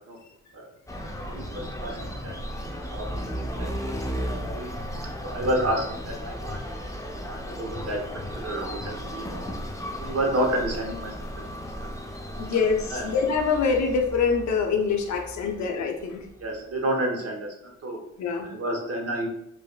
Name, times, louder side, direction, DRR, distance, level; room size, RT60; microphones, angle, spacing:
sound 1, 0.9-16.6, equal, 10° left, 0.5 m, -35 dB
voice 1, 1.3-2.6 2.9-3.1 3.4-4.0 4.2-4.7 5.2-6.9 7.3-8.1 8.4-9.5 10.0-11.5 12.9-13.1 15.4-15.5 16.4-18.0 18.4-19.3, right 1 dB, 50° right, 1 dB, 1.0 m, -30 dB
voice 2, 12.4-16.3 18.2-18.5, left 5 dB, 65° left, 3 dB, 0.7 m, -25 dB
4.7 x 2.0 x 2.2 m, 0.76 s
cardioid pair, 60°, 31 cm